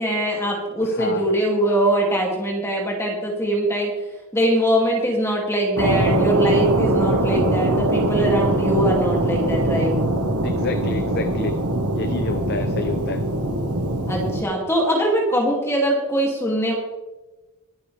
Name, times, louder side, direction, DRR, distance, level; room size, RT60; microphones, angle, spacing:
voice 1, 0.0-3.9 4.3-9.9 14.1-16.7, right 1 dB, 10° left, -2 dB, 2.6 m, -22 dB
voice 2, 0.8-1.2 10.4-11.6 11.9-13.2, left 3 dB, 45° left, 8 dB, 0.7 m, -29 dB
sound 1, 5.8-14.4, right 1 dB, 80° right, 1.5 m, -22 dB
23.5 x 8.5 x 3.4 m, 1.1 s
head